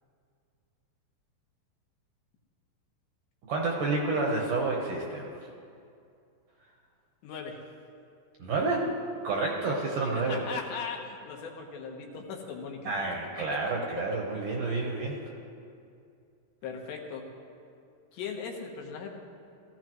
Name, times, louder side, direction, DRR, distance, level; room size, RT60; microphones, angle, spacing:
voice 1, 3.5-5.3 8.4-8.9 9.2-10.4 12.9-15.1, right 3 dB, 70° right, -1 dB, 2.1 m, -29 dB
voice 2, 7.2-7.6 10.1-12.9 15.0-15.1 16.6-17.2 18.1-19.2, left 5 dB, 80° left, 1 dB, 3.4 m, -38 dB
18.0 x 15.0 x 3.1 m, 2.4 s
omnidirectional pair, 5.0 m